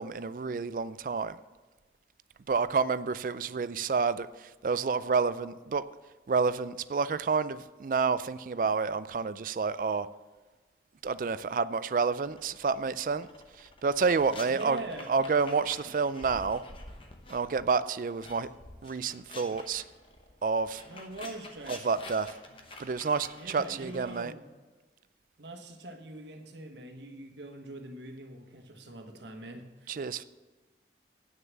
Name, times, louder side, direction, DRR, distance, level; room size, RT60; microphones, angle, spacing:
voice 1, 0.0-1.4 2.5-5.8 6.3-10.1 11.0-13.3 13.6-14.8 15.1-16.6 17.3-18.5 18.8-19.8 20.4-20.8 21.7-22.3 22.8-24.3 29.9-30.2, right 5 dB, 50° right, 15 dB, 0.3 m, -29 dB
sound 1, 12.3-17.7 18.0-24.2, left 2 dB, 30° left, 0.9 m, -48 dB
voice 2, 14.5-15.1 15.8-16.0 20.9-21.9 23.3-24.4 25.4-30.0, right 1 dB, 85° right, 4 dB, 1.3 m, -43 dB
9.0 x 6.7 x 7.4 m, 1.3 s
head